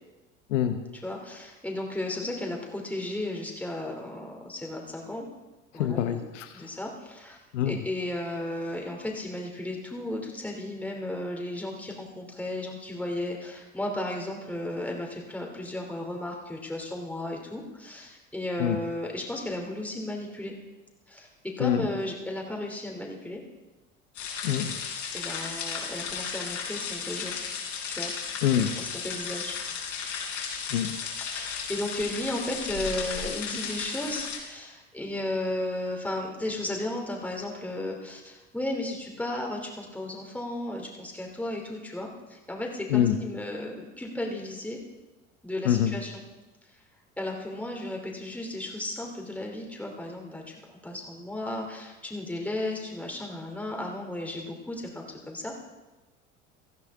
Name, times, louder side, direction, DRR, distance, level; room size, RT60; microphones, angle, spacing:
voice 1, 1.0-5.3 5.7-6.2 6.5-7.4 7.6-20.5 21.1-23.4 25.1-27.3 27.9-28.1 28.8-29.5 31.2-44.8 45.4-46.2 47.2-55.7, left 1 dB, 5° left, 0 dB, 2.7 m, -34 dB
voice 2, 5.7-6.6 7.5-7.8 18.6-18.8 21.6-21.9 24.4-24.8 28.4-28.7 30.7-31.0 42.9-43.2 45.6-45.9, left 10 dB, 70° left, 8 dB, 1.0 m, -25 dB
sound 1, 24.1-34.4, left 6 dB, 50° left, 4.0 m, -34 dB
17.0 x 14.5 x 3.6 m, 1.1 s
figure-of-eight pair, 70°, 38 cm